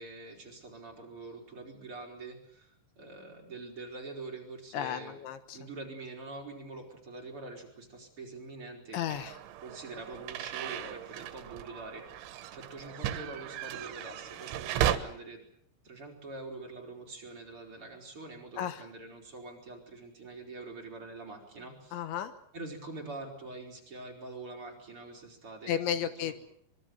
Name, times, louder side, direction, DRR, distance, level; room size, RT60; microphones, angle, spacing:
voice 1, 0.0-5.2 5.5-9.0 9.6-15.4 15.8-22.1 22.5-26.3, right 3 dB, 30° right, 0 dB, 5.2 m, -45 dB
voice 2, 4.7-5.6 8.9-9.4 18.6-18.8 21.9-22.3 25.7-26.3, left 10 dB, 75° left, 11 dB, 3.5 m, -33 dB
sound 1, 9.1-15.0, right 11 dB, 80° right, 3.7 m, -35 dB
25.0 x 23.0 x 7.9 m, 0.66 s
omnidirectional pair, 5.5 m